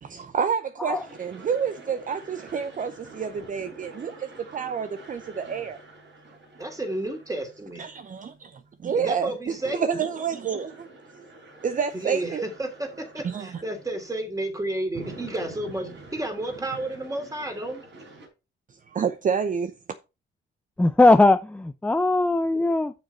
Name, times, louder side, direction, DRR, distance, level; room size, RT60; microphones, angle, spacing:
voice 1, 0.0-5.8 7.8-10.9 11.6-12.4 13.2-13.6 18.9-19.7, right 7 dB, 40° right, 0.8 m, -29 dB
sound 1, 0.8-18.3, right 2 dB, 65° right, 4.2 m, -47 dB
voice 2, 6.6-7.8 9.0-10.0 11.9-17.8, right 1 dB, 15° right, 2.9 m, -31 dB
voice 3, 20.8-22.9, left 2 dB, 5° left, 0.6 m, -19 dB
7.8 x 6.6 x 4.3 m
cardioid pair, 90°, 20 cm